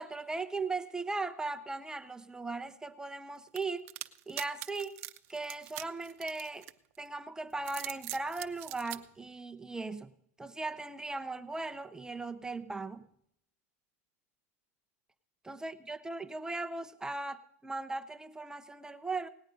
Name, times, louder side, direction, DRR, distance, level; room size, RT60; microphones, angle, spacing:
voice 1, 0.0-3.9 4.3-5.0 5.3-6.7 7.0-10.1 10.4-13.1 15.4-19.3, right 3 dB, 10° right, 9 dB, 0.6 m, -38 dB
sound 1, 3.6-7.0 7.5-9.0, right 18 dB, 60° right, 0.7 m, -42 dB
18.0 x 8.9 x 5.2 m, 0.73 s
supercardioid pair, 120°, 8 cm